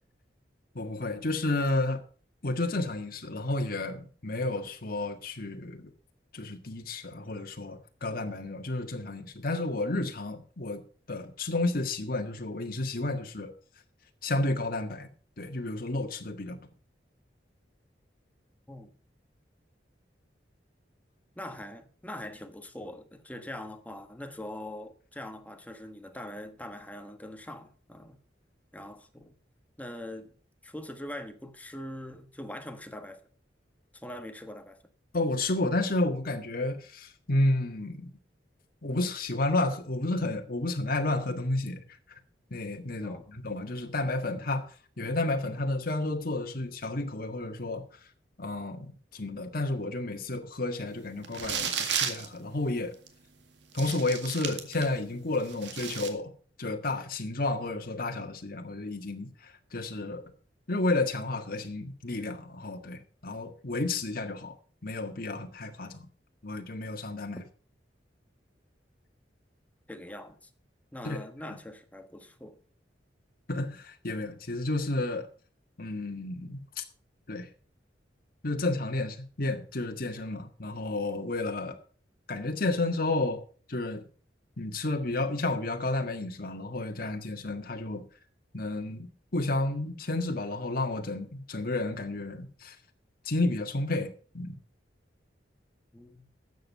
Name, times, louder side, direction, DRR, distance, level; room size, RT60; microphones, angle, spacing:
voice 1, 0.7-2.0 2.4-5.9 6.3-10.8 11.1-13.5 14.2-15.1 15.4-16.6 35.1-38.1 38.8-41.8 42.5-44.7 45.0-47.8 48.4-52.9 53.7-56.3 56.6-60.2 60.7-64.5 64.8-66.1 66.4-67.4 71.0-71.2 73.5-75.3 75.8-76.8 77.3-77.5 78.4-81.8 82.3-83.4 83.7-84.0 84.6-88.0 88.5-92.7 93.2-94.6, left 2 dB, 55° left, 1.6 m, -31 dB
voice 2, 21.3-28.2 28.7-29.3 29.8-30.3 30.6-33.2 33.9-34.8 43.0-43.3 69.9-70.5 70.9-72.6 95.9-96.3, left 1 dB, 10° left, 1.3 m, -42 dB
sound 1, 51.2-52.3 53.1-53.2 53.7-55.0 55.3-56.1, right 7 dB, 85° right, 1.9 m, -33 dB
12.5 x 8.0 x 5.5 m
head